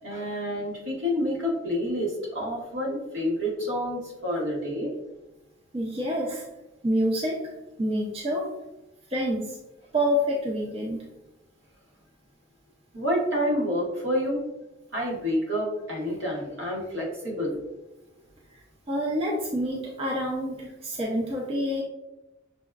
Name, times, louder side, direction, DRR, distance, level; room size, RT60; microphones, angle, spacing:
voice 1, 0.0-4.9 12.9-14.4 14.9-17.6, equal, 75° right, -4 dB, 1.3 m, -28 dB
voice 2, 5.7-6.4 6.8-7.4 7.8-8.5 9.1-9.6 9.9-11.1 18.9-21.8, equal, 30° right, -3 dB, 0.5 m, -27 dB
6.0 x 2.3 x 2.2 m, 0.98 s
head